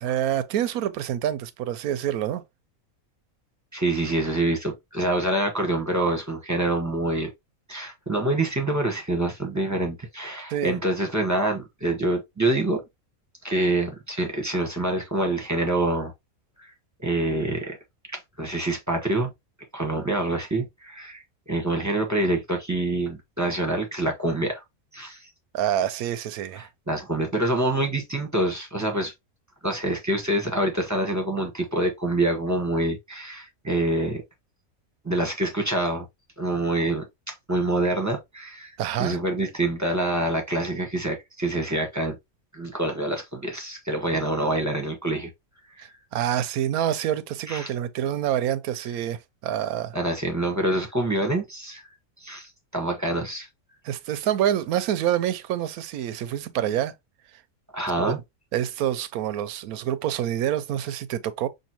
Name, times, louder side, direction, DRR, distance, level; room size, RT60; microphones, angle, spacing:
voice 1, 0.0-2.4 10.5-10.8 25.5-26.7 38.8-39.2 45.8-50.0 53.8-56.9 58.0-58.2 58.5-61.5, right 11 dB, 90° right, 1.1 m, -27 dB
voice 2, 3.7-7.3 7.7-12.8 13.4-16.1 16.6-16.7 17.0-17.8 18.1-19.3 19.7-24.6 24.9-25.3 26.6-29.1 29.6-34.2 35.0-36.1 36.4-42.2 42.5-45.3 45.8-45.9 47.5-47.7 49.9-51.9 52.2-53.5 57.7-58.2, right 1 dB, 15° right, 1.1 m, -26 dB
6.5 x 2.7 x 2.9 m
omnidirectional pair, 1.5 m